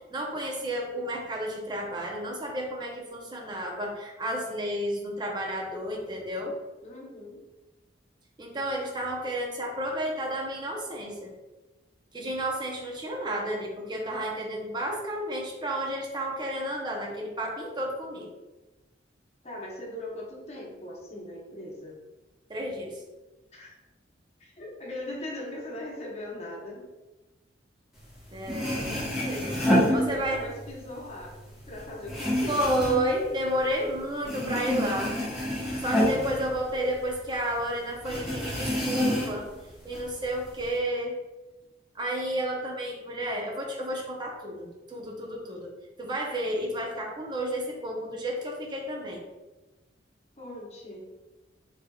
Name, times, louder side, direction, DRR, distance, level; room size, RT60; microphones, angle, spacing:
voice 1, 0.1-6.5 8.4-11.3 12.1-18.3 22.5-23.0 28.3-29.6 29.9-30.4 32.5-35.1 35.8-39.5 39.8-41.1 41.9-45.7 46.0-49.2, right 1 dB, 25° right, 0 dB, 0.6 m, -31 dB
voice 2, 6.8-7.4 19.4-22.0 23.5-23.7 24.4-26.8 29.5-31.4 31.7-32.7 50.4-51.1, left 1 dB, 35° left, -3 dB, 0.8 m, -39 dB
sound 1, 28.2-28.3 28.4-30.7 31.0-33.9 34.2-37.2 37.5-37.6 38.0-39.5 39.9-40.7, equal, ahead, 0.9 m, -28 dB
3.3 x 3.3 x 2.2 m, 1.1 s
head